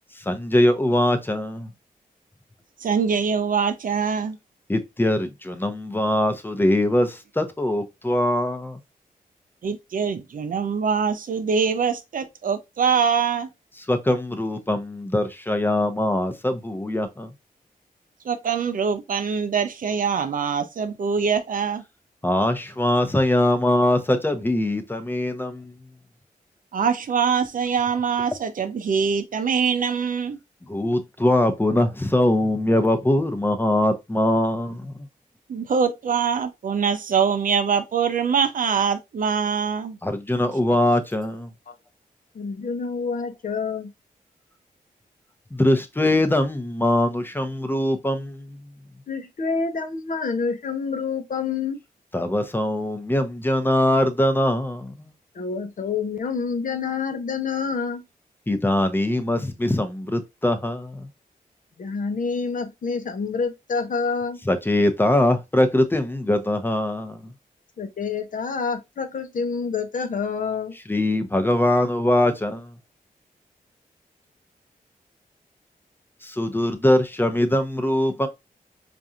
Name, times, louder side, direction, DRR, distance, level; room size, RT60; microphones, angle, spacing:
voice 1, 0.3-1.7 4.7-8.8 13.9-17.3 22.2-25.7 30.7-34.9 40.0-41.5 45.5-48.6 52.1-55.1 58.5-61.1 64.5-67.3 70.9-72.7 76.2-78.3, left 1 dB, 15° left, 0.7 m, -22 dB
voice 2, 2.8-4.4 9.6-13.5 18.2-21.8 26.7-30.4 35.5-40.0, right 6 dB, 65° right, 0.6 m, -23 dB
voice 3, 42.3-43.9 49.1-51.8 55.3-58.0 61.8-64.4 67.8-70.7, left 5 dB, 60° left, 0.7 m, -27 dB
4.6 x 2.6 x 2.7 m
cardioid pair, 80°, 15 cm